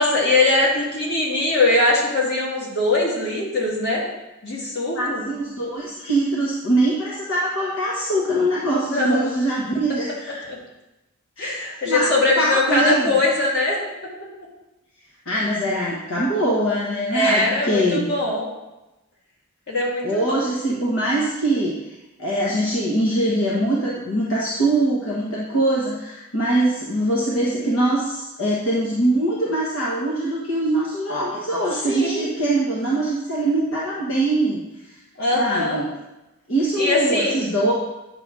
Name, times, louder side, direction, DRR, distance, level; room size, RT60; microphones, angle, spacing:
voice 1, 0.0-4.0 4.4-5.2 8.8-9.3 10.5-10.6 11.4-13.8 17.1-18.5 19.7-20.4 31.9-32.2 35.2-35.8 36.8-37.5, left 2 dB, 50° left, -4 dB, 2.4 m, -21 dB
voice 2, 4.9-10.4 11.4-11.5 11.8-12.1 12.4-13.1 15.2-18.1 20.0-34.6 35.3-35.9 36.5-37.7, right 1 dB, 70° left, -5 dB, 1.4 m, -22 dB
9.7 x 3.9 x 6.2 m, 0.99 s
head